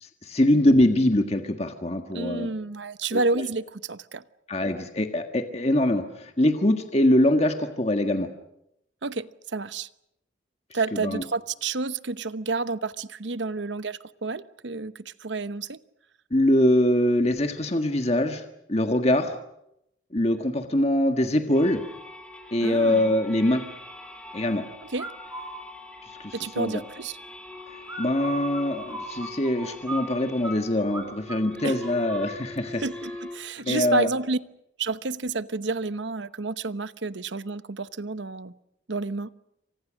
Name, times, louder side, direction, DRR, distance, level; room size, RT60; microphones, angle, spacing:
voice 1, 0.0-2.5 3.1-3.4 4.5-8.3 10.9-11.2 16.3-18.4 18.7-19.4 20.1-21.8 22.5-23.6 24.3-24.6 26.0-26.8 28.0-32.8 33.6-34.1, left 1 dB, 35° left, 6 dB, 1.7 m, -23 dB
voice 2, 2.1-4.2 9.0-9.9 10.7-15.8 22.6-23.2 24.8-25.1 26.3-27.2 31.6-31.8 32.8-34.4 34.8-38.5 38.9-39.3, right 3 dB, 70° right, 14 dB, 1.0 m, -30 dB
sound 1, 21.5-33.4, left 2 dB, 5° left, 3.4 m, -43 dB
sound 2, 25.0-25.6 27.8-30.6 30.9-31.0 31.3-32.3, right 2 dB, 15° right, 4.7 m, -36 dB
28.5 x 25.5 x 6.4 m, 0.81 s
head